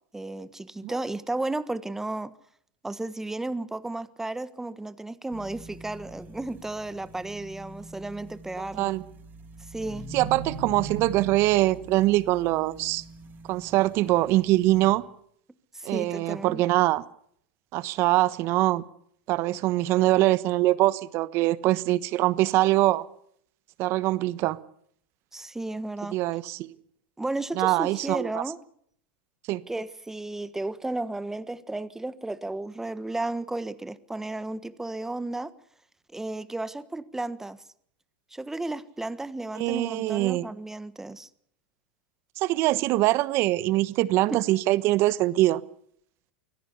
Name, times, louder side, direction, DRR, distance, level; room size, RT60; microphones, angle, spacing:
voice 1, 0.1-2.3 2.8-9.0 9.7-10.1 15.7-16.6 25.3-26.2 27.2-28.6 29.7-35.5 36.1-37.6 38.3-41.3 44.3-44.4, right 2 dB, 5° right, 1.3 m, -33 dB
sound 1, 5.3-14.9, right 3 dB, 35° right, 5.6 m, -42 dB
voice 2, 10.1-13.0 13.5-15.0 15.8-17.0 17.7-18.8 19.3-23.0 23.8-24.6 26.1-26.7 27.5-28.4 29.5-29.6 39.6-40.5 42.4-45.6, right 17 dB, 50° right, 1.1 m, -23 dB
24.5 x 17.0 x 8.3 m
hypercardioid pair, 100°, 6 cm